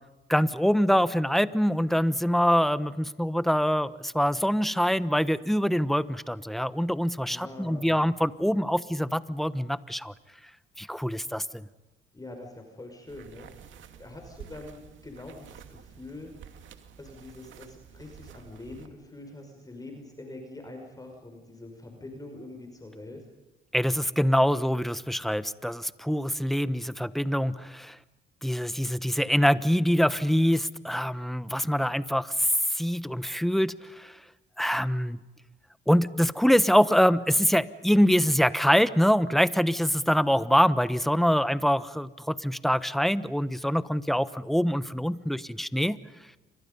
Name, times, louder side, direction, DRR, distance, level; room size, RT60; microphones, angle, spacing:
voice 1, 0.3-10.1 10.8-11.7 23.7-28.0 28.4-34.1 34.6-35.2 35.9-46.0, equal, ahead, 15 dB, 1.1 m, -24 dB
voice 2, 7.3-8.0 12.1-13.5 14.0-16.6 17.0-23.2, left 2 dB, 20° left, 3 dB, 5.6 m, -44 dB
sound 1, 13.1-18.9, right 8 dB, 75° right, 2.5 m, -50 dB
29.5 x 25.0 x 5.4 m, 1.2 s
cardioid pair, 90°, 20 cm